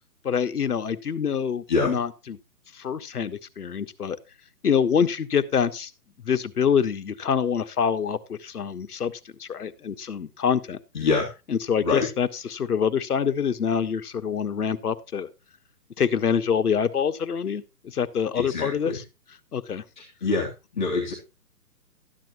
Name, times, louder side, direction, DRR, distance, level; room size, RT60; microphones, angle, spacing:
voice 1, 0.2-2.4 2.7-4.2 4.6-5.9 6.2-9.1 9.4-10.8 11.5-15.3 16.0-19.0 19.5-19.8, left 7 dB, 65° left, 10 dB, 1.4 m, -25 dB
voice 2, 10.9-11.3 11.8-12.1 18.4-19.0 20.0-20.5 20.7-21.1, left 4 dB, 30° left, -3 dB, 2.4 m, -25 dB
13.5 x 10.5 x 3.0 m, 0.28 s
hypercardioid pair, 180°, 48 cm